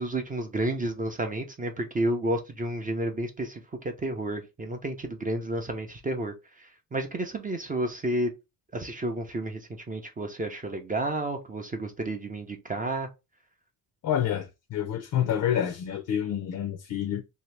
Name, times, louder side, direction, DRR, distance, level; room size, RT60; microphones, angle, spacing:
voice 1, 0.0-8.3 8.7-13.1, right 1 dB, 20° right, 0.5 m, -31 dB
voice 2, 14.0-17.2, left 9 dB, 50° left, 0.5 m, -28 dB
2.8 x 2.8 x 3.2 m
cardioid pair, 130°, 40 cm